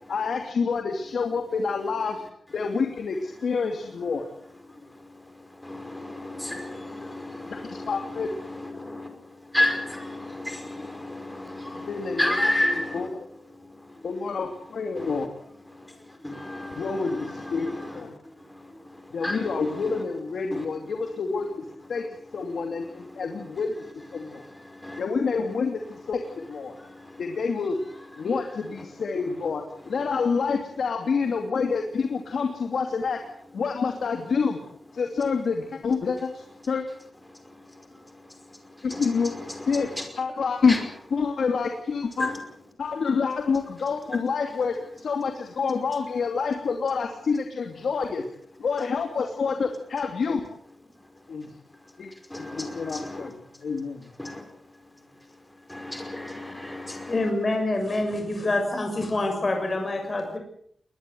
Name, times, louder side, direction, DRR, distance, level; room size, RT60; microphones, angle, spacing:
voice 1, 0.1-2.2 2.5-4.3 7.5-7.6 7.9-8.3 11.9-12.2 14.0-15.3 16.8-18.1 19.1-22.0 22.3-23.8 24.1-24.4 25.0-26.7 27.2-27.8 28.2-33.2 33.5-34.6 34.9-36.8 38.8-39.3 39.7-39.9 40.2-40.8 41.1-42.3 42.8-48.2 48.6-50.4 51.3-51.5 52.0-52.1 52.5-53.3 53.6-54.1, left 5 dB, 70° left, 4 dB, 2.7 m, -27 dB
voice 2, 5.6-9.1 9.5-13.1 15.0-15.3 16.2-18.0 19.2-20.0 20.5-20.6 24.8-25.0 38.9-40.0 40.7-40.9 42.2-42.4 52.3-53.3 54.2-54.4 55.7-57.3, left 1 dB, 5° left, 5 dB, 5.2 m, -31 dB
voice 3, 57.1-60.4, left 2 dB, 30° left, 3 dB, 6.6 m, -26 dB
21.5 x 20.5 x 7.9 m, 0.65 s
wide cardioid pair, 180°, 0 cm